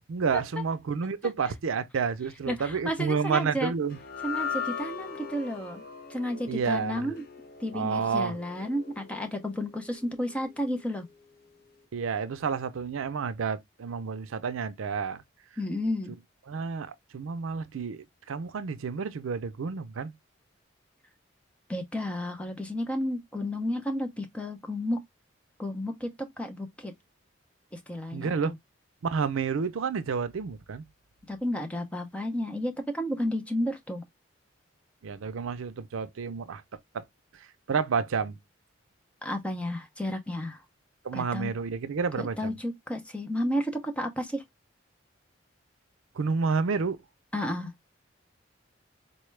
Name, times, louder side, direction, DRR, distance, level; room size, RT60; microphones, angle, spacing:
voice 1, 0.1-4.0 6.5-7.1 7.7-8.3 11.9-15.2 16.5-20.1 28.1-28.5 29.0-30.8 35.0-36.6 36.9-37.0 37.7-38.4 41.0-42.6 46.2-47.0, right 5 dB, 85° right, 0.5 m, -30 dB
voice 2, 2.5-3.7 4.2-5.8 6.1-7.2 7.6-11.1 15.6-16.1 21.7-25.0 25.6-26.9 27.7-28.5 31.3-34.0 39.2-40.6 41.1-41.5 42.2-44.4 47.3-47.7, left 1 dB, 5° left, 0.6 m, -32 dB
sound 1, 3.9-10.3, left 6 dB, 45° left, 0.6 m, -39 dB
4.2 x 2.3 x 3.1 m
head